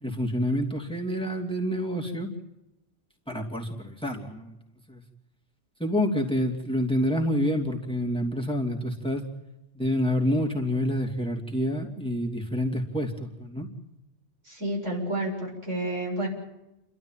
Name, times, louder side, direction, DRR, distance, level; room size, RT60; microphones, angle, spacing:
voice 1, 0.0-2.3 3.3-4.6 4.9-5.0 5.8-9.2 9.7-13.7, equal, 5° left, 3 dB, 2.8 m, -28 dB
voice 2, 14.4-16.3, right 1 dB, 85° right, 0 dB, 7.6 m, -30 dB
30.0 x 12.5 x 9.0 m, 0.93 s
omnidirectional pair, 1.2 m